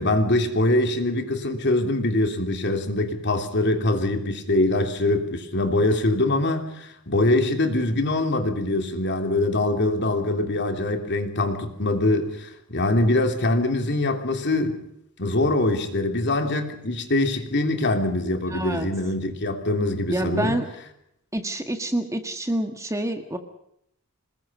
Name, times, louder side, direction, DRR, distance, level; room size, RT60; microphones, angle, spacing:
voice 1, 0.0-14.8 15.2-20.6, left 2 dB, 50° left, 5 dB, 3.2 m, -23 dB
voice 2, 18.5-18.9 20.1-20.7 21.3-23.4, right 1 dB, 15° right, 6 dB, 1.7 m, -27 dB
27.5 x 20.5 x 5.6 m, 0.75 s
head